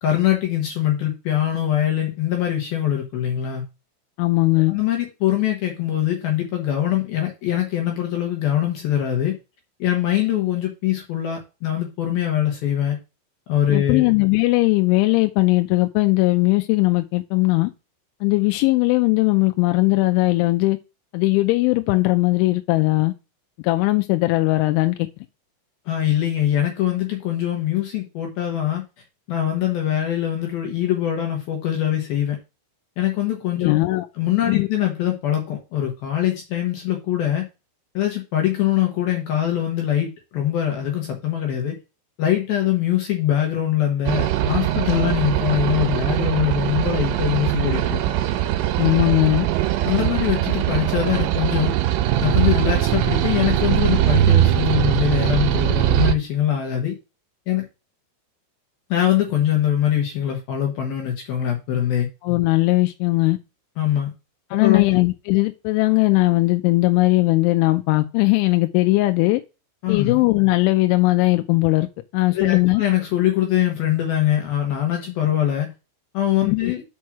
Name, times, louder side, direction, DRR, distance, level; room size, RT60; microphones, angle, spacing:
voice 1, 0.0-3.6 4.7-9.4 9.8-13.0 13.5-14.1 25.9-28.8 29.3-32.4 33.0-33.8 34.2-37.4 37.9-41.8 42.2-48.0 49.9-51.7 52.2-57.0 57.5-57.6 58.9-62.1 63.8-64.1 64.5-64.8 69.8-70.2 72.3-75.7 76.1-76.8, left 11 dB, 65° left, 2.5 m, -22 dB
voice 2, 4.2-4.7 13.7-17.7 18.2-20.8 21.1-23.1 23.6-25.0 33.6-34.1 34.5-34.7 48.8-49.5 62.2-63.4 64.5-69.4 69.9-71.9 72.1-72.8 76.4-76.7, left 21 dB, 85° left, 2.9 m, -19 dB
sound 1, 44.1-56.1, right 13 dB, 85° right, 3.2 m, -21 dB
6.3 x 5.4 x 5.8 m
omnidirectional pair, 5.7 m